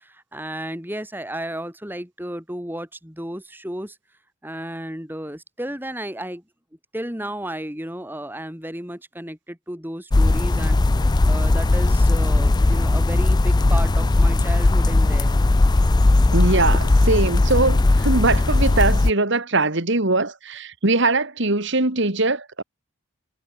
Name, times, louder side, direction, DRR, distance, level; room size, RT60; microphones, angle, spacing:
voice 1, 0.0-4.0 4.4-6.4 6.9-10.8 11.2-15.3, right 1 dB, 10° right, 4.3 m, -33 dB
sound 1, 10.1-19.1, left 2 dB, 20° left, 0.3 m, -18 dB
voice 2, 16.3-22.6, right 2 dB, 55° right, 2.4 m, -21 dB
head